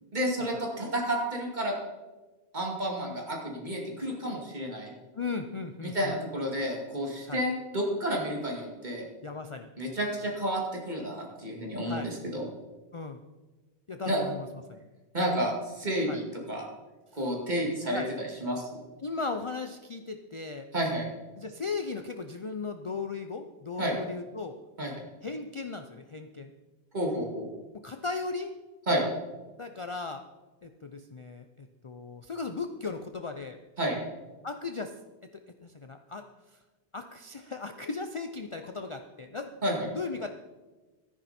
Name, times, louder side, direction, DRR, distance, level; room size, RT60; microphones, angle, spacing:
voice 1, 0.1-1.7 2.5-4.9 5.8-9.1 9.8-12.5 14.1-14.2 15.1-16.2 16.5-16.6 17.1-18.7 20.7-21.0 23.8-23.9 24.8-24.9 26.9-27.5 28.9-29.0 33.8-34.0 39.6-39.9, equal, 45° right, -1 dB, 2.4 m, -30 dB
voice 2, 5.1-6.1 7.3-7.4 9.2-9.7 11.8-12.1 12.9-13.2 13.9-14.8 16.1-16.2 17.9-18.1 19.0-20.7 21.4-24.6 25.2-26.5 27.7-28.5 29.6-30.2 30.6-33.6 34.4-35.0 35.3-36.2 36.9-40.3, left 4 dB, 40° left, 7 dB, 0.5 m, -37 dB
13.5 x 10.0 x 4.3 m, 1.2 s
omnidirectional pair, 1.1 m